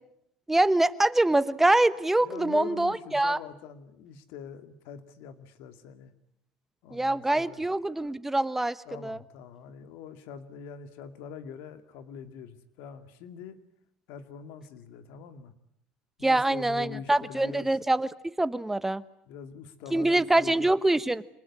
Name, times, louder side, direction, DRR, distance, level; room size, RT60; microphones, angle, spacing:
voice 1, 0.5-3.4 6.9-8.8 9.0-9.2 16.2-19.0 19.9-21.2, right 2 dB, 10° right, 15 dB, 1.0 m, -24 dB
voice 2, 2.2-6.1 6.8-7.6 8.9-13.6 14.1-15.5 16.2-17.8 19.3-20.7, left 7 dB, 75° left, 10 dB, 2.4 m, -43 dB
26.5 x 20.0 x 9.8 m, 0.78 s
supercardioid pair, 110°, 4 cm